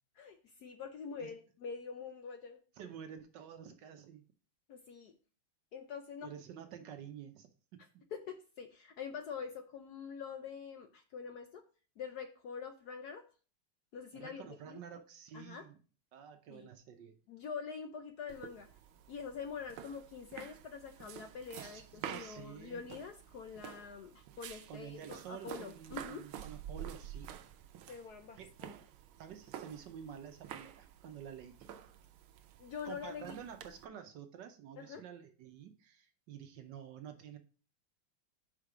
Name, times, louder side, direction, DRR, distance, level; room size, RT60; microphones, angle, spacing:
voice 1, 0.2-2.6 4.7-5.1 5.7-6.3 8.1-11.6 12.0-13.2 13.9-14.8 15.3-15.6 16.5-16.7 17.3-18.7 19.1-26.2 27.9-28.7 32.6-33.4 34.8-35.0, left 6 dB, 70° left, 7 dB, 1.0 m, -45 dB
voice 2, 2.8-4.2 6.2-7.5 14.1-15.7 16.1-17.1 21.6-22.8 24.7-27.3 28.4-28.5 29.2-31.6 32.8-37.4, right 8 dB, 70° right, 7 dB, 1.2 m, -49 dB
sound 1, 18.3-33.9, right 10 dB, 90° right, 1.5 m, -50 dB
5.6 x 5.0 x 4.8 m, 0.38 s
omnidirectional pair, 2.3 m